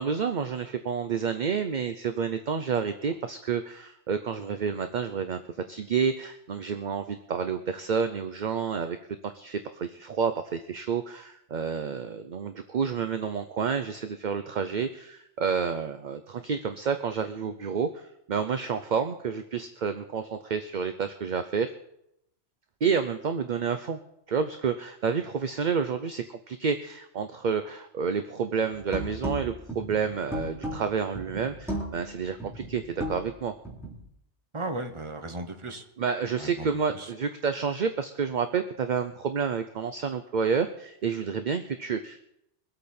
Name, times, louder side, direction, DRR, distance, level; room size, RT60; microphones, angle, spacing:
voice 1, 0.0-5.4 5.7-9.0 9.2-21.7 22.8-24.0 24.3-33.5 36.0-42.2, right 6 dB, 50° right, 9 dB, 0.7 m, -29 dB
sound 1, 28.8-34.1, equal, ahead, 3.1 m, -36 dB
voice 2, 34.5-35.8 36.4-37.1, right 2 dB, 25° right, 6 dB, 1.1 m, -36 dB
23.0 x 8.4 x 4.3 m, 0.79 s
omnidirectional pair, 1.2 m